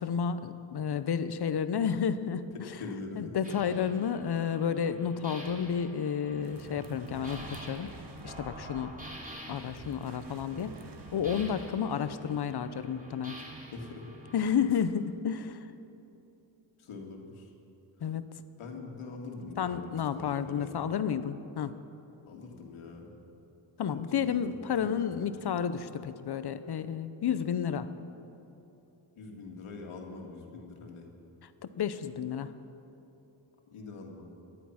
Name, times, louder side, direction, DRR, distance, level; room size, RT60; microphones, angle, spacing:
voice 1, 0.0-2.5 3.2-7.9 8.2-9.0 9.5-10.7 11.1-13.4 14.3-15.6 18.0-18.2 19.6-21.7 23.8-27.9 31.6-32.5, left 7 dB, 50° left, 12 dB, 0.9 m, -31 dB
voice 2, 2.8-3.4 13.7-14.0 14.7-14.8 16.8-17.5 18.6-20.8 22.3-23.1 23.9-25.3 29.2-31.1 33.7-34.3, left 3 dB, 75° left, 1 dB, 2.4 m, -44 dB
sound 1, 3.4-14.7, equal, 15° right, 3.1 m, -48 dB
sound 2, 6.4-12.1, right 5 dB, 55° right, 1.2 m, -49 dB
18.0 x 12.0 x 5.9 m, 3.0 s
cardioid pair, 80°, 49 cm